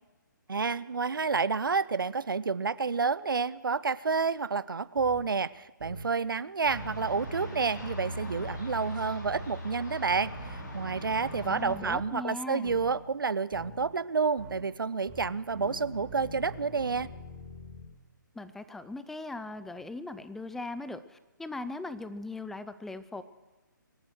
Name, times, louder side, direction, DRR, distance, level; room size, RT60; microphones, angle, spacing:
voice 1, 0.5-17.1, right 5 dB, 90° right, 18 dB, 0.4 m, -29 dB
sound 1, 5.0-5.2 5.8-6.1 6.7-8.6 9.2-9.5 10.1-12.1 12.7-12.9 13.5-13.8 14.4-14.6 15.1-17.9, right 1 dB, 35° right, 4.2 m, -44 dB
sound 2, 6.7-11.8, equal, 60° left, 5.6 m, -40 dB
voice 2, 11.4-12.8 18.3-23.2, left 2 dB, 5° left, 13 dB, 0.4 m, -39 dB
24.5 x 8.9 x 6.4 m, 1.1 s
figure-of-eight pair, 140°, 11 cm